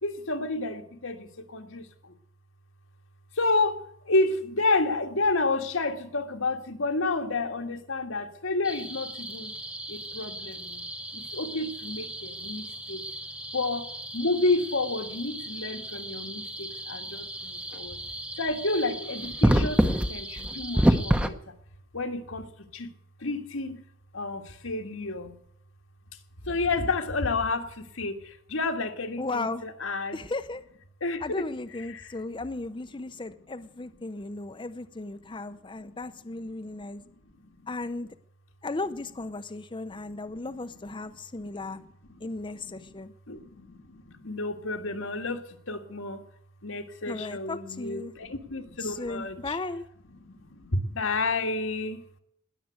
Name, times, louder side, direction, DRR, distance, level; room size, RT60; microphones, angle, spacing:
voice 1, 0.0-2.1 3.4-9.6 9.9-10.9 11.1-13.0 13.5-13.9 14.1-18.0 18.4-21.5 21.9-22.9 23.2-23.8 24.1-25.4 26.4-30.3 31.0-31.2 31.8-32.1 35.4-35.5 37.4-37.5 40.1-40.4 41.0-41.1 41.4-42.9 43.3-46.2 46.6-49.6 50.2-52.0, left 2 dB, 85° left, 5 dB, 1.8 m, -30 dB
sound 1, 8.6-21.3, equal, 5° right, 0.9 m, -30 dB
voice 2, 29.2-29.6 30.1-30.6 31.2-37.0 37.7-38.1 38.6-41.8 42.2-43.1 47.1-48.1 48.8-49.8, left 3 dB, 25° left, 9 dB, 0.6 m, -35 dB
20.0 x 7.6 x 8.1 m, 0.70 s
head